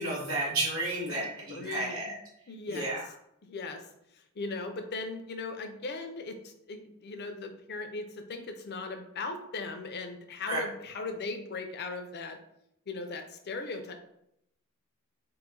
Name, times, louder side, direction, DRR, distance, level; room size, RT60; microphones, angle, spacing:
voice 1, 0.0-2.1 2.7-3.0 10.5-10.6, right 2 dB, 65° right, -6 dB, 1.6 m, -32 dB
voice 2, 1.1-2.2 2.5-2.9 3.4-3.9 4.1-12.4 12.9-13.9, left 3 dB, 50° left, 6 dB, 0.6 m, -38 dB
4.0 x 2.6 x 3.8 m, 0.77 s
head